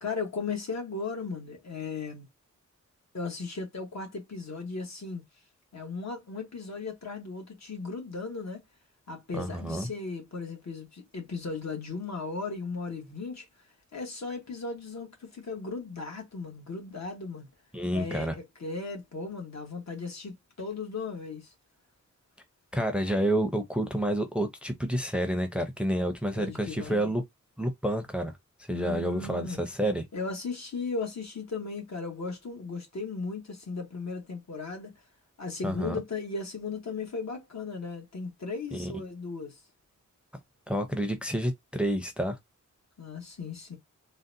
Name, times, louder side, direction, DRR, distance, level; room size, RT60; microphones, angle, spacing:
voice 1, 0.0-2.3 3.1-5.2 5.7-8.6 9.1-13.5 13.9-17.5 17.9-21.5 26.3-27.2 28.7-29.6 30.1-35.0 35.4-39.6 43.0-43.8, left 4 dB, 60° left, 1.2 m, -36 dB
voice 2, 9.3-9.9 17.7-18.4 22.7-27.2 27.6-28.3 28.7-30.0 35.6-35.9 38.7-38.9 40.7-42.4, right 1 dB, 5° right, 0.6 m, -29 dB
3.9 x 2.1 x 2.6 m
wide cardioid pair, 90°, 30 cm